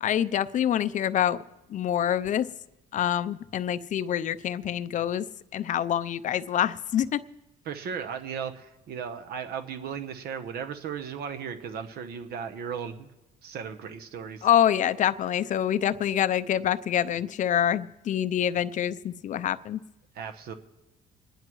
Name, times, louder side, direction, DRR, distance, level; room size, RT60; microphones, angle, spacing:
voice 1, 0.0-1.4 1.7-2.5 2.9-5.3 5.5-7.2 14.4-19.8, left 10 dB, 50° left, 14 dB, 0.5 m, -26 dB
voice 2, 7.7-13.1 13.4-14.5 20.1-20.5, right 7 dB, 65° right, 7 dB, 1.0 m, -36 dB
27.5 x 10.5 x 3.1 m, 0.98 s
cardioid pair, 110°, 17 cm